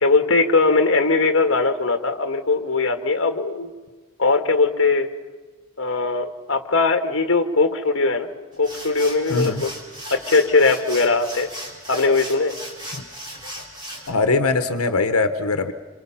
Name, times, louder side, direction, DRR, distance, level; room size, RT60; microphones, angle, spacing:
voice 1, 0.0-3.7 4.2-5.1 5.8-8.3 8.6-9.7 10.1-11.5 11.9-12.6, left 3 dB, 60° left, 7 dB, 1.5 m, -20 dB
sound 1, 8.5-14.1, equal, 20° right, 4.0 m, -36 dB
voice 2, 9.3-9.6 14.1-15.7, left 3 dB, 90° left, 9 dB, 1.1 m, -21 dB
27.0 x 26.5 x 5.8 m, 1.3 s
head